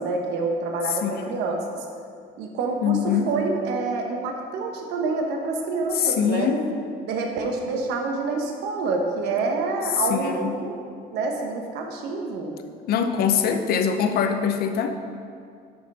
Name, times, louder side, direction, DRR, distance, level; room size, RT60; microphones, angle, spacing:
voice 1, 0.0-1.6 2.4-6.5 7.1-10.7 11.1-12.6, right 3 dB, 90° right, 2 dB, 1.1 m, -27 dB
voice 2, 0.9-1.4 2.8-3.3 5.9-6.7 10.1-10.5 12.9-14.9, left 7 dB, 65° left, 7 dB, 0.7 m, -23 dB
6.4 x 6.0 x 5.5 m, 2.3 s
cardioid pair, 110°, 17 cm